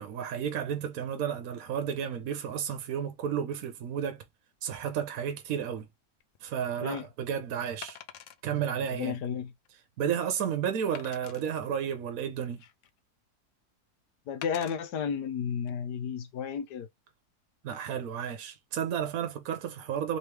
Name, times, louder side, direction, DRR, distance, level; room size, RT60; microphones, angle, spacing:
voice 1, 0.0-4.2 4.6-5.9 6.4-8.0 8.4-9.2 10.0-12.6 17.6-20.2, right 8 dB, 65° right, 1.1 m, -32 dB
Wood, 6.2-6.4 7.8-8.4 9.0-9.1 9.6-9.7 10.9-11.4 12.2-13.0 14.4-14.8 15.5-15.7, left 9 dB, 65° left, 0.8 m, -46 dB
voice 2, 9.0-9.5 14.3-16.9, left 7 dB, 85° left, 1.4 m, -32 dB
3.4 x 3.1 x 3.2 m
omnidirectional pair, 1.7 m